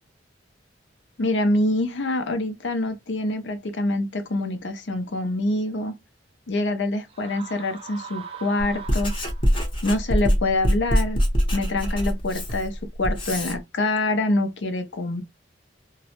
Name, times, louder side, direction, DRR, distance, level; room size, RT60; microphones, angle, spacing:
voice 1, 1.2-6.0 6.5-9.1 9.8-11.2 11.5-15.2, left 2 dB, 80° left, 0.6 m, -25 dB
sound 1, 7.1-9.7, right 6 dB, 30° right, 0.4 m, -40 dB
Writing, 8.6-13.6, equal, 30° left, 0.8 m, -24 dB
2.3 x 2.0 x 2.8 m
head